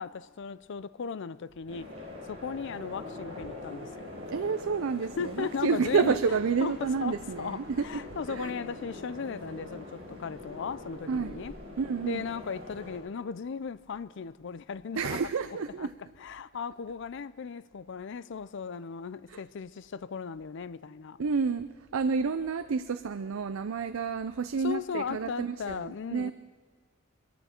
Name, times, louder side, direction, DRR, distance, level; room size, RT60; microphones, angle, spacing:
voice 1, 0.0-2.0 2.2-4.2 5.2-6.2 6.6-11.5 12.0-15.2 15.8-15.9 16.2-21.2 24.6-26.3, left 6 dB, 65° left, 0.5 m, -37 dB
sound 1, 1.7-13.0, left 2 dB, 30° right, 4.7 m, -44 dB
voice 2, 4.3-8.0 8.3-8.5 11.1-11.4 11.8-12.2 14.9-15.9 19.3-19.4 21.2-26.3, right 5 dB, 80° right, 0.5 m, -30 dB
23.0 x 13.5 x 4.4 m
head